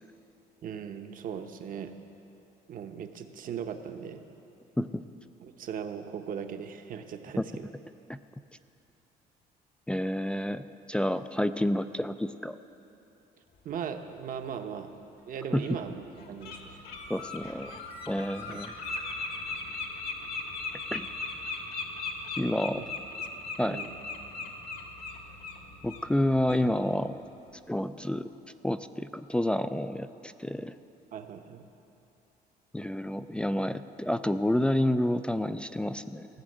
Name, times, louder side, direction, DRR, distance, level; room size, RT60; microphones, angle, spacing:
voice 1, 0.6-1.9 2.7-4.2 5.4-7.7 13.6-14.9 15.3-16.9 18.5-18.6 22.8-22.9 23.4-23.9 31.1-31.6, right 7 dB, 55° right, 7 dB, 0.9 m, -38 dB
voice 2, 9.9-12.6 15.5-15.6 17.1-17.8 18.1-18.7 20.9-21.1 22.4-22.8 23.6-23.8 25.8-27.2 27.7-28.3 28.6-30.7 32.7-36.3, left 1 dB, 5° left, 11 dB, 0.3 m, -29 dB
Bird, 14.8-14.9 15.6-15.7 16.2-16.6 16.8-25.6 25.9-26.1 26.5-26.6, left 4 dB, 65° left, 1.6 m, -37 dB
sound 1, 15.7-27.1, left 1 dB, 90° left, 2.1 m, -55 dB
15.5 x 6.2 x 7.8 m, 2.8 s
cardioid pair, 110°, 17 cm